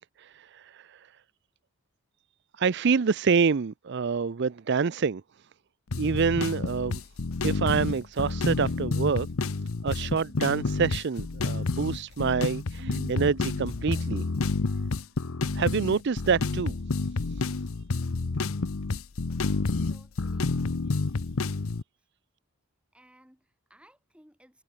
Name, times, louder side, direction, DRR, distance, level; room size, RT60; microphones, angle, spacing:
voice 1, 0.2-1.1 2.6-5.2 5.9-7.0 7.4-9.3 9.8-14.2 15.5-16.8 17.4-17.5, right 5 dB, 55° right, 0.5 m, -27 dB
sound 1, 5.9-21.8, left 3 dB, 75° left, 0.8 m, -29 dB
Keyboard (musical), 12.8-14.6, right 2 dB, 70° right, 1.2 m, -46 dB
voice 2, 19.8-20.6 22.0-22.1 22.9-24.6, right 1 dB, 5° right, 6.5 m, -59 dB
head